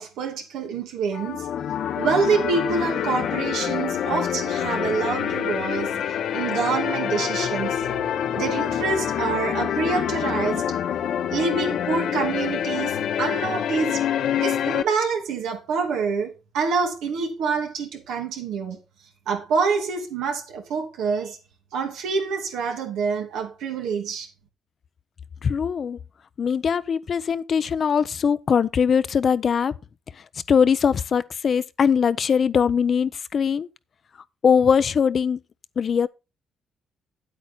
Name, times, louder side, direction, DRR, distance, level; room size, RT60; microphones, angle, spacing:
voice 1, 0.0-1.5 2.0-5.9 6.3-7.8 8.3-10.7 11.3-14.0 14.4-18.8 19.3-21.4 21.7-24.3, right 5 dB, 90° right, 2.4 m, -26 dB
sound 1, 1.1-14.8, left 9 dB, 70° left, 0.9 m, -26 dB
voice 2, 25.4-26.0 26.4-29.7 30.5-33.7 34.4-35.4 35.8-36.1, left 7 dB, 50° left, 0.6 m, -21 dB
9.0 x 8.4 x 4.2 m
cardioid pair, 90°, 0 cm